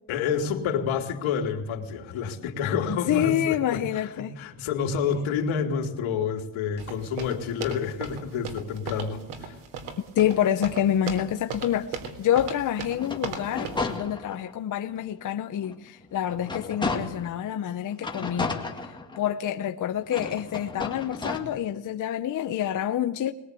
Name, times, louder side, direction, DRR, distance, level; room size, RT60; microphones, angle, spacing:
voice 1, 0.1-9.5, left 6 dB, 70° left, 3 dB, 3.3 m, -29 dB
voice 2, 2.9-4.3 10.2-18.6 19.2-23.3, left 10 dB, 40° left, 6 dB, 0.8 m, -27 dB
sound 1, 6.8-13.9, right 5 dB, 90° right, 3.7 m, -37 dB
sound 2, 13.0-14.6 15.1-15.2 15.6-17.4 18.0-19.5 20.0-21.4, left 3 dB, 10° left, 2.0 m, -33 dB
22.0 x 20.5 x 8.4 m, 0.88 s
cardioid pair, 165°, 49 cm